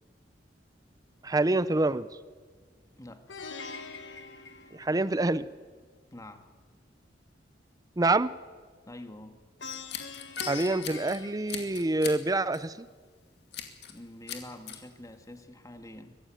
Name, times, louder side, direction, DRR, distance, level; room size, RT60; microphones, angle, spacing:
voice 1, 1.2-2.1 4.7-5.5 8.0-8.3 10.5-12.9, right 2 dB, 20° right, 16 dB, 0.6 m, -26 dB
Plucked string instrument, 3.3-5.4 9.6-12.2, left 5 dB, 90° left, 1.8 m, -42 dB
voice 2, 6.1-6.5 8.9-9.4 13.9-16.2, left 1 dB, 20° left, 7 dB, 1.7 m, -46 dB
Scissors, 9.6-11.2 11.5-12.2 12.5-12.8 13.5-14.0 14.3-14.8, left 9 dB, 65° left, 2.4 m, -40 dB
22.5 x 15.0 x 9.1 m, 1.5 s
head